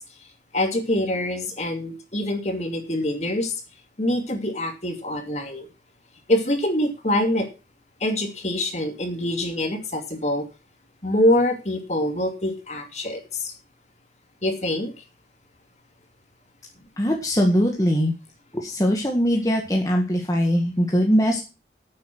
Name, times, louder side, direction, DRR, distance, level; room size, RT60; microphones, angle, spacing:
voice 1, 0.5-3.5 4.0-5.7 6.3-7.5 8.0-10.4 11.0-13.5 14.4-14.9, left 1 dB, 40° left, 5 dB, 2.7 m, -25 dB
voice 2, 17.0-18.1 18.5-21.4, equal, 20° left, 1 dB, 1.8 m, -21 dB
11.0 x 8.6 x 6.1 m, 0.30 s
head